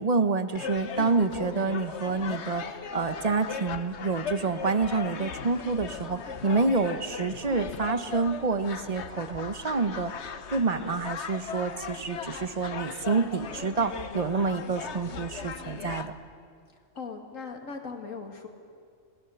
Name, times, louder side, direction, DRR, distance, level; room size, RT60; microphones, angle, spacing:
voice 1, 0.0-2.6 2.9-10.1 10.5-16.1, right 4 dB, 35° right, 11 dB, 0.9 m, -28 dB
sound 1, 0.5-16.1, left 6 dB, 60° left, 1.2 m, -38 dB
voice 2, 16.9-18.5, left 4 dB, 85° left, 4 dB, 2.6 m, -39 dB
26.5 x 19.5 x 7.1 m, 2.2 s
omnidirectional pair, 1.3 m